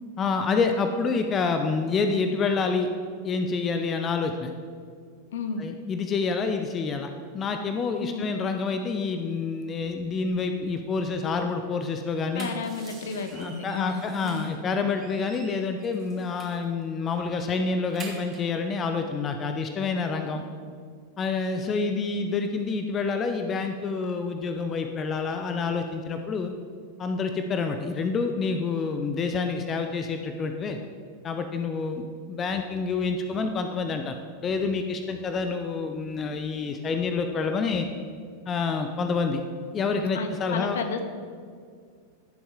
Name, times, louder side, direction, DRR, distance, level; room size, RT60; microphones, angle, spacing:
voice 1, 0.2-2.9 3.2-4.5 5.6-12.5 13.3-20.4 21.2-26.5 27.0-30.8 31.2-37.9 38.5-39.4 39.7-40.8, left 4 dB, 25° left, 6 dB, 0.6 m, -28 dB
voice 2, 5.3-5.6 8.0-8.3 12.3-14.5 40.1-41.0, left 5 dB, 60° left, 7 dB, 1.0 m, -32 dB
sound 1, 12.3-14.6 14.9-16.7 17.1-17.2 17.5-18.6, right 4 dB, 25° right, 2.0 m, -46 dB
15.0 x 7.0 x 3.8 m, 2.1 s
figure-of-eight pair, 90°, 0 cm